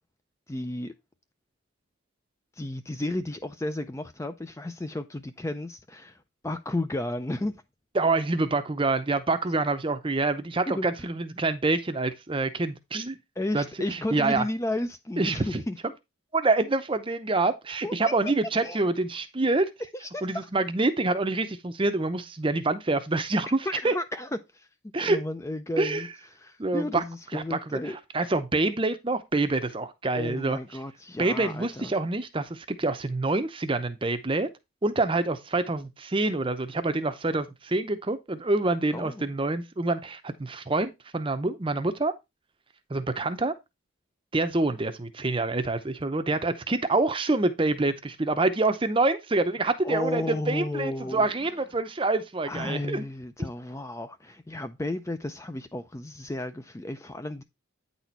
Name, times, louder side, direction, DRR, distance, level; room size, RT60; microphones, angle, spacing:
voice 1, 0.5-0.9 2.6-7.6 10.7-10.9 13.4-15.8 17.8-18.1 18.6-18.8 19.9-20.5 23.7-24.7 25.0-26.1 26.3-28.0 30.1-31.9 38.9-39.1 49.8-51.3 52.5-57.4, left 1 dB, 15° left, 0.4 m, -33 dB
voice 2, 7.9-13.2 13.5-14.5 15.2-15.6 16.3-19.7 20.2-23.9 24.9-25.2 25.8-26.1 26.6-27.0 27.3-30.6 31.2-34.5 34.8-42.1 42.9-43.5 44.3-53.0, right 2 dB, 25° right, 0.6 m, -26 dB
9.2 x 4.2 x 4.4 m
head